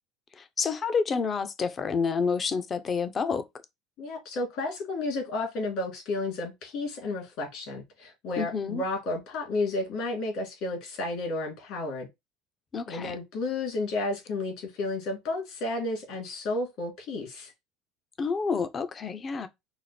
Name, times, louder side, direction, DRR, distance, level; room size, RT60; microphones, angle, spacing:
voice 1, 0.4-3.4 8.4-8.8 12.7-13.1 18.2-19.5, left 5 dB, 35° left, 0.7 m, -29 dB
voice 2, 4.0-12.1 12.9-17.5, left 2 dB, 65° left, 2.8 m, -32 dB
4.9 x 2.1 x 4.2 m
supercardioid pair, 85°, 0 cm